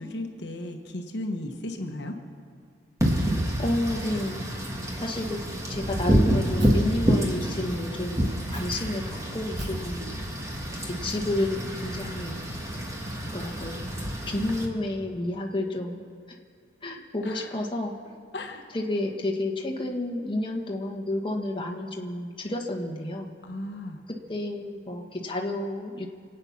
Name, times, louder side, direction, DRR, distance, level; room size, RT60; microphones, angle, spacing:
voice 1, 0.0-2.1 17.2-17.5 18.3-18.6 23.4-24.0, left 1 dB, 65° left, 4 dB, 1.2 m, -35 dB
Wind / Rain, 3.0-14.7, equal, 15° right, 1.6 m, -28 dB
voice 2, 3.6-4.4 5.0-5.4 5.7-10.1 10.8-12.3 13.3-13.7 14.3-16.0 16.8-17.9 18.7-23.3 24.3-26.1, left 1 dB, 25° left, 0 dB, 1.4 m, -30 dB
Fire, 6.6-6.7 8.5-8.6 9.6-11.5, right 3 dB, 70° right, 3.5 m, -49 dB
27.0 x 9.0 x 5.9 m, 2.2 s
head